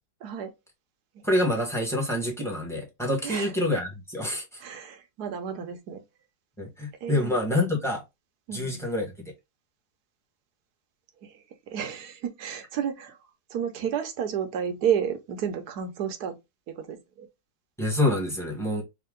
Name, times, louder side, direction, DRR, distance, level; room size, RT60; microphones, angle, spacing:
voice 1, 1.2-4.4 6.6-8.0 8.5-9.1 17.8-18.8, left 1 dB, ahead, 1.1 m, -27 dB
voice 2, 4.6-6.0 7.0-7.3 8.5-8.8 11.2-13.2 13.5-16.4 16.7-17.3, right 8 dB, 65° right, 1.2 m, -31 dB
3.7 x 2.8 x 3.7 m
omnidirectional pair, 1.9 m